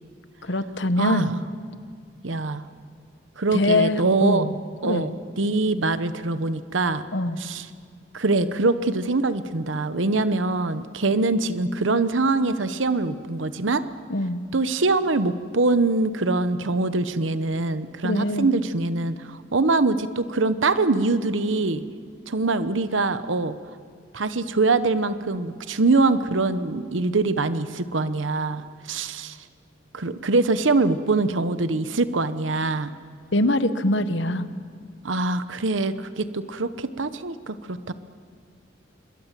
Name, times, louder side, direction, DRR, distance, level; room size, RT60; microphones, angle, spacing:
voice 1, 0.4-1.3 3.5-4.5 4.8-5.1 7.1-7.4 14.1-14.4 18.0-18.5 33.3-34.5, left 1 dB, 65° left, 11 dB, 1.3 m, -23 dB
voice 2, 1.0-1.4 2.2-2.6 3.4-4.5 4.8-5.1 5.4-7.0 7.4-7.7 8.1-13.8 14.5-21.8 22.3-23.5 24.1-29.4 29.9-32.9 35.0-37.9, right 3 dB, 80° right, 12 dB, 0.9 m, -23 dB
26.0 x 22.0 x 7.5 m, 2.2 s
head